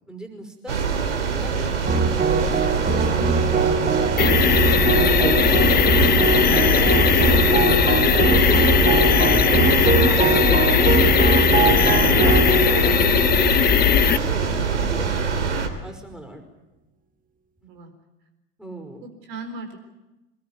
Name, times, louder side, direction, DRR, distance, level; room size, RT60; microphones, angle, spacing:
voice 1, 0.1-0.9 1.1-1.7 2.1-4.6 5.0-8.8 9.2-13.7 14.1-15.1 15.8-16.4 17.6-17.7 18.6-19.0, equal, ahead, 6 dB, 5.4 m, -37 dB
sound 1, 0.7-15.7, right 5 dB, 75° right, 3.1 m, -24 dB
sound 2, 1.9-14.3, right 5 dB, 25° right, 1.9 m, -22 dB
sound 3, 4.2-14.2, left 10 dB, 25° left, 1.0 m, -19 dB
voice 2, 11.9-12.3 17.7-17.9 19.0-19.8, right 2 dB, 55° right, 6 dB, 4.1 m, -38 dB
23.5 x 20.5 x 9.3 m, 1.0 s
figure-of-eight pair, 75°, 36 cm